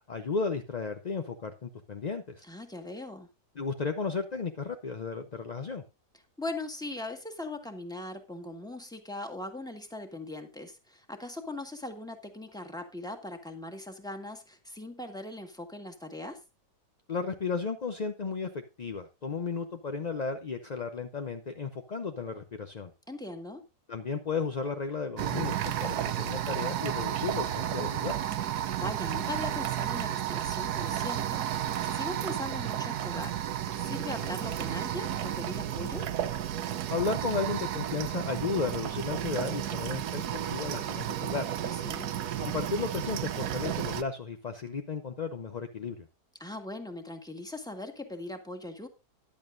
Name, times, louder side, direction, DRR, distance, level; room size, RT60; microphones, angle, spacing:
voice 1, 0.1-2.4 3.6-5.8 17.1-22.9 23.9-28.2 36.9-41.4 42.4-46.1, left 5 dB, 45° left, 6 dB, 0.5 m, -34 dB
voice 2, 2.4-3.3 6.4-16.4 23.1-23.6 28.8-36.1 41.6-42.1 46.4-48.9, left 2 dB, 5° left, 5 dB, 1.5 m, -40 dB
sound 1, 25.2-44.0, right 11 dB, 75° right, 1.3 m, -32 dB
14.0 x 11.0 x 2.6 m, 0.27 s
omnidirectional pair, 1.7 m